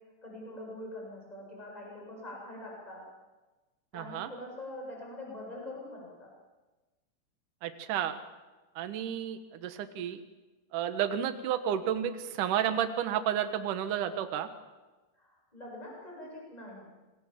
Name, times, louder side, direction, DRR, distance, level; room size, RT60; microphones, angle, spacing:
voice 1, 0.2-3.0 3.9-6.3 15.2-16.9, left 1 dB, 5° left, -2 dB, 7.4 m, -44 dB
voice 2, 3.9-4.3 7.6-8.2 8.8-10.2 10.7-14.5, right 9 dB, 80° right, 9 dB, 1.9 m, -31 dB
27.0 x 21.5 x 7.5 m, 1.2 s
omnidirectional pair, 5.7 m